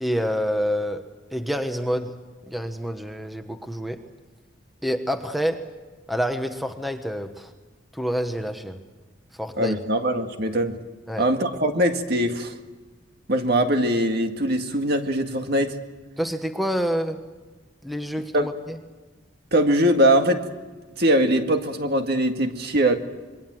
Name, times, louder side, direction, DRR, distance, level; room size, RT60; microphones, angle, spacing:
voice 1, 0.0-2.2 2.5-4.0 4.8-5.7 6.1-7.5 7.9-8.8 9.3-9.7 11.1-11.3 16.2-17.2 17.8-18.8, equal, ahead, 6 dB, 1.2 m, -27 dB
voice 2, 9.6-10.8 11.2-12.5 13.3-15.8 18.3-18.5 19.5-20.4 21.0-22.9, right 1 dB, 55° right, 5 dB, 2.0 m, -21 dB
26.5 x 22.5 x 7.7 m, 1.3 s
head